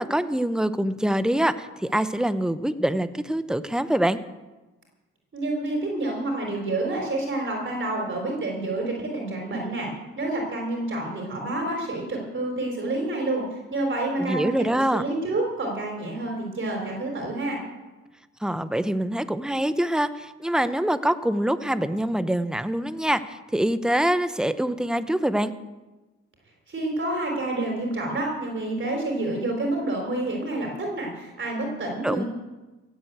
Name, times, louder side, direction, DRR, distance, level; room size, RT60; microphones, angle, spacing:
voice 1, 0.0-4.2 14.2-15.0 18.4-25.5 32.0-32.2, right 1 dB, ahead, 12 dB, 0.8 m, -25 dB
voice 2, 5.3-9.9 10.2-17.6 26.7-32.3, right 2 dB, 40° right, 1 dB, 3.9 m, -28 dB
16.0 x 8.1 x 8.1 m, 1.1 s
cardioid pair, 90°, 30 cm